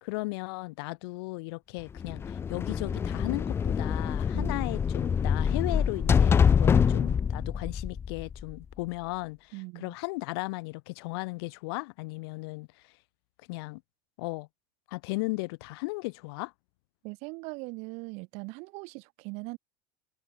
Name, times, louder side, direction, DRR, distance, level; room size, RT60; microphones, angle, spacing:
voice 1, 0.0-12.9 13.5-13.8 14.2-14.5 14.9-16.5, left 25 dB, 80° left, 2.4 m, -36 dB
sound 1, 2.0-8.7, left 7 dB, 20° left, 0.8 m, -25 dB
voice 2, 9.5-10.0 17.0-19.6, right 29 dB, 60° right, 4.0 m, -40 dB
cardioid pair, 160°, 13 cm